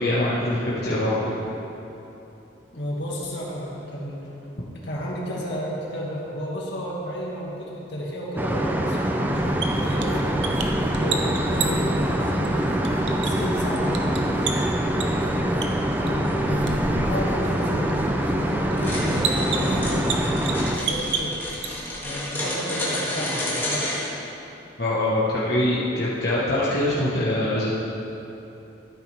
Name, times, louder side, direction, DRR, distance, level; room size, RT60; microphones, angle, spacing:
voice 1, 0.0-1.4 24.8-27.7, left 1 dB, 55° left, -8 dB, 1.3 m, -23 dB
voice 2, 2.7-4.3 4.5-10.3 10.7-14.6 15.0-15.7 16.0-21.5 22.0-23.9, equal, 75° left, -4 dB, 2.0 m, -32 dB
sound 1, 8.4-20.8, right 1 dB, 10° right, 0.5 m, -24 dB
sound 2, 9.3-22.1, right 4 dB, 80° right, 0.8 m, -33 dB
sound 3, 18.8-24.0, left 1 dB, 10° left, 1.7 m, -30 dB
13.0 x 8.6 x 3.4 m, 3.0 s
head